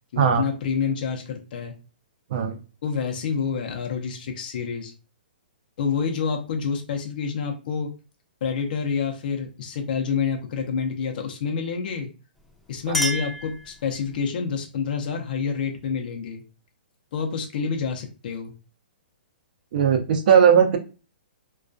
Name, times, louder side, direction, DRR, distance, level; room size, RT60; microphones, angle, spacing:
voice 1, 0.1-1.7 2.8-4.9 5.8-7.9 8.4-12.1 12.7-16.4 17.1-18.5, left 6 dB, 60° left, 3 dB, 0.5 m, -28 dB
Chink clink, 12.4-14.2, equal, 5° left, 0.6 m, -31 dB
voice 2, 19.7-20.8, right 7 dB, 55° right, 4 dB, 0.6 m, -18 dB
2.3 x 2.2 x 2.5 m, 0.34 s
hypercardioid pair, 140°, 5 cm